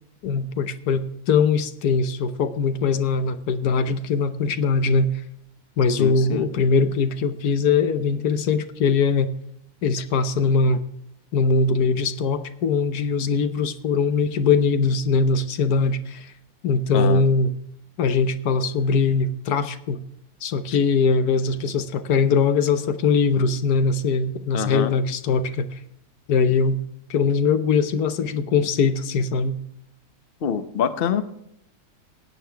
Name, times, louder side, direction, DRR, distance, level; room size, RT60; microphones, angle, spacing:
voice 1, 0.2-5.1 5.8-9.3 9.8-10.8 11.3-16.3 16.6-17.5 18.0-20.0 20.4-25.8 26.3-26.8 27.1-29.6, left 4 dB, 75° left, 11 dB, 1.3 m, -21 dB
voice 2, 6.0-6.5 16.9-17.2 24.5-24.9 30.4-31.2, left 8 dB, 45° left, 11 dB, 0.8 m, -25 dB
16.5 x 9.3 x 3.4 m, 0.74 s
omnidirectional pair, 1.7 m